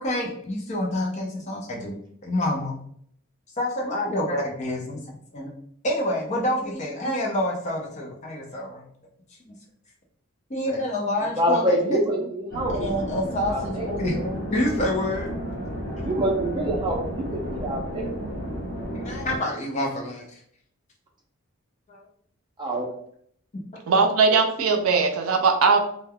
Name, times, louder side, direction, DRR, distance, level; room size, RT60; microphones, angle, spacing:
voice 1, 0.0-2.8 3.6-5.0 5.3-5.5 5.8-8.8 9.4-9.5 10.5-12.0 12.7-15.3 18.9-20.4 21.9-22.0, left 1 dB, 30° left, -1 dB, 0.5 m, -28 dB
voice 2, 11.4-13.0 13.4-14.2 16.0-18.1 22.6-22.9, right 1 dB, 20° right, -1 dB, 0.5 m, -26 dB
sound 1, 12.5-19.4, equal, 55° left, 1.1 m, -32 dB
voice 3, 23.9-25.8, right 4 dB, 75° right, 4 dB, 0.4 m, -19 dB
3.2 x 2.1 x 2.2 m, 0.65 s
head